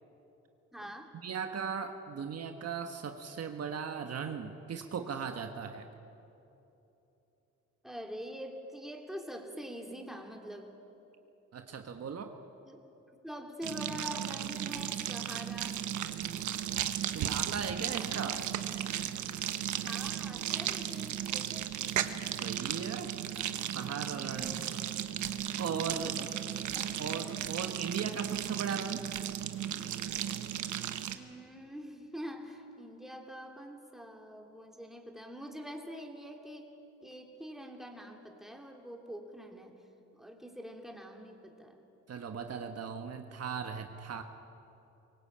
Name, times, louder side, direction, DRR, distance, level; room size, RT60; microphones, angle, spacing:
voice 1, 0.7-1.1 7.8-10.7 12.6-12.8 13.2-15.8 17.9-18.5 19.7-21.7 24.3-24.7 25.9-26.3 26.7-26.9 31.1-36.6 37.0-39.8 40.1-41.8, equal, ahead, 1 dB, 3.1 m, -45 dB
voice 2, 1.2-5.9 11.5-12.4 17.1-18.3 22.4-23.1 23.7-24.6 25.6-26.1 27.0-29.0 42.1-44.2, right 6 dB, 55° right, 5 dB, 1.4 m, -38 dB
sound 1, 13.6-31.1, right 10 dB, 75° right, 1.2 m, -35 dB
23.0 x 18.0 x 8.8 m, 3.0 s
cardioid pair, 90°, 30 cm